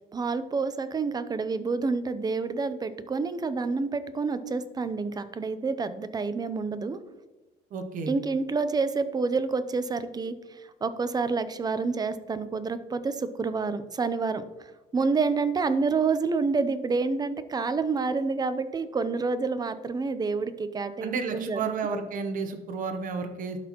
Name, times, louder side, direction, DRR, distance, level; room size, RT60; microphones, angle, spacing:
voice 1, 0.1-7.0 8.1-21.7, right 4 dB, 25° right, 12 dB, 0.5 m, -28 dB
voice 2, 7.7-8.1 21.0-23.6, right 5 dB, 55° right, 6 dB, 0.9 m, -32 dB
12.0 x 4.3 x 2.9 m, 1.1 s
cardioid pair, 110°, 17 cm